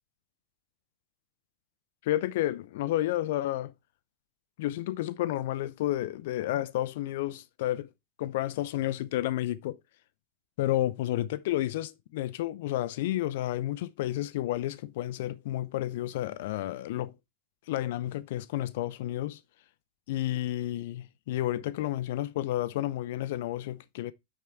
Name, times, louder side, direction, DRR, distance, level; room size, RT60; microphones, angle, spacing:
voice 1, 2.0-3.7 4.6-7.9 8.2-9.8 10.6-17.1 17.7-19.4 20.1-24.1, left 14 dB, 55° left, 0.5 m, -31 dB
6.2 x 5.8 x 4.6 m
figure-of-eight pair, 90°, 0 cm